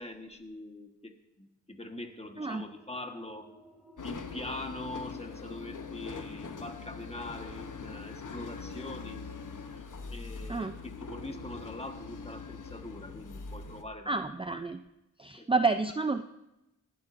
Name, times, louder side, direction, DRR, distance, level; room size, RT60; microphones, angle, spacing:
voice 1, 0.0-3.5 4.0-9.3 9.7-14.2 15.4-15.5, left 1 dB, 20° left, 5 dB, 1.3 m, -43 dB
sound 1, 2.0-13.2, right 1 dB, ahead, 3.9 m, -60 dB
sound 2, 4.0-13.8, left 5 dB, 75° left, 0.9 m, -42 dB
voice 2, 14.1-14.8 15.2-16.2, right 3 dB, 20° right, 8 dB, 0.4 m, -29 dB
18.5 x 11.5 x 2.6 m, 0.91 s
wide cardioid pair, 60°, 31 cm